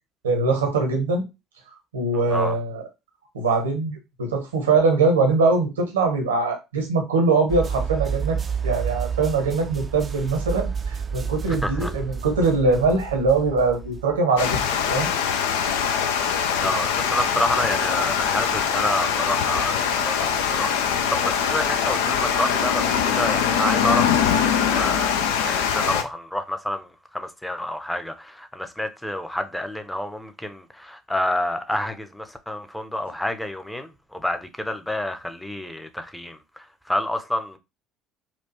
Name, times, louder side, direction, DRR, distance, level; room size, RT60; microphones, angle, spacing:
voice 1, 0.2-1.2 1.9-2.8 3.3-14.6 14.9-15.1 22.2-22.3, right 3 dB, 80° right, 0.9 m, -22 dB
sound 1, 7.5-14.2, right 6 dB, 30° right, 0.4 m, -30 dB
voice 2, 11.5-11.9 16.6-25.1 25.4-37.6, left 1 dB, 5° left, 0.7 m, -29 dB
Water, 14.4-26.0, left 7 dB, 70° left, 0.4 m, -23 dB
4.3 x 2.4 x 2.9 m
figure-of-eight pair, 55°, 0 cm